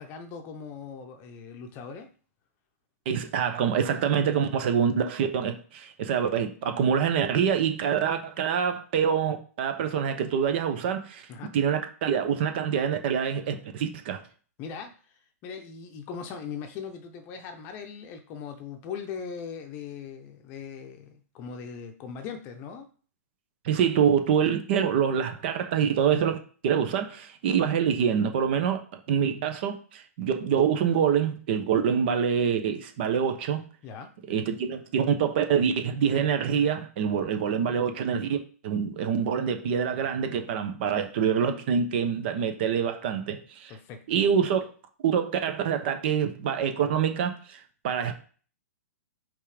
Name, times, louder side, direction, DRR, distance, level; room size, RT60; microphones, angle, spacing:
voice 1, 0.0-2.1 11.3-11.5 14.6-15.0 15.4-22.9 33.8-34.1 43.7-44.0, left 6 dB, 25° left, 0.8 m, -39 dB
voice 2, 3.1-11.2 11.5-14.2 23.6-26.4 26.6-33.6 34.3-43.7 44.1-44.7 45.0-48.1, right 7 dB, 40° right, 0.9 m, -26 dB
5.5 x 3.7 x 5.0 m
hypercardioid pair, 160°, 9 cm